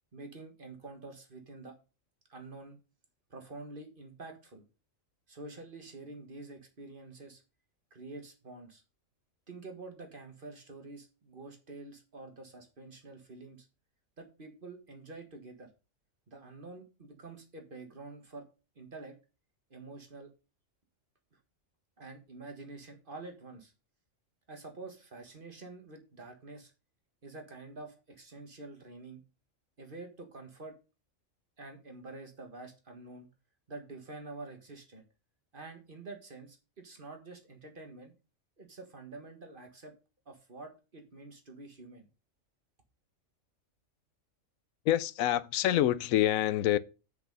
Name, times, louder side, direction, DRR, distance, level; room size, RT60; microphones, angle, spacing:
voice 1, 0.1-1.8 2.3-2.8 3.3-4.6 5.3-7.4 7.9-8.8 9.5-13.7 14.2-15.7 16.3-18.5 18.8-19.2 19.7-20.3 22.0-23.7 24.5-26.7 27.2-29.2 29.8-30.8 31.6-33.3 33.7-35.0 35.5-38.1 38.6-39.9 40.3-42.1, right 3 dB, 40° right, 1.7 m, -47 dB
voice 2, 44.8-46.8, left 12 dB, 85° left, 1.0 m, -26 dB
8.1 x 5.9 x 5.4 m
omnidirectional pair, 1.4 m